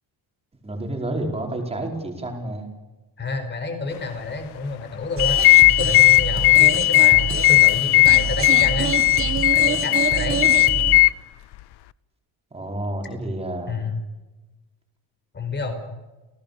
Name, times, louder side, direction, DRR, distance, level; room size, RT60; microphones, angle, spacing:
voice 1, 0.6-2.7 12.5-13.8, right 1 dB, 15° right, 1 dB, 4.9 m, -29 dB
voice 2, 3.2-9.0 9.5-10.4 13.7-14.0 15.3-15.8, left 3 dB, 25° left, 7 dB, 4.9 m, -29 dB
sound 1, 5.2-11.1, left 22 dB, 60° left, 0.7 m, -16 dB
sound 2, 5.2-11.0, right 6 dB, 30° right, 1.6 m, -27 dB
29.5 x 18.0 x 6.9 m, 1.1 s
cardioid pair, 175°, 45 cm